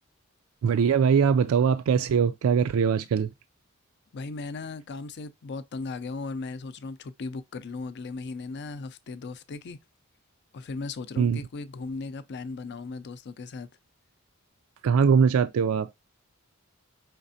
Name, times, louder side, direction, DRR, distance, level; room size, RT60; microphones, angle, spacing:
voice 1, 0.6-3.3 11.2-11.4 14.8-15.9, right 6 dB, 80° right, 0.3 m, -22 dB
voice 2, 4.1-9.8 10.5-13.7, left 3 dB, 55° left, 0.5 m, -37 dB
5.1 x 3.3 x 2.6 m
head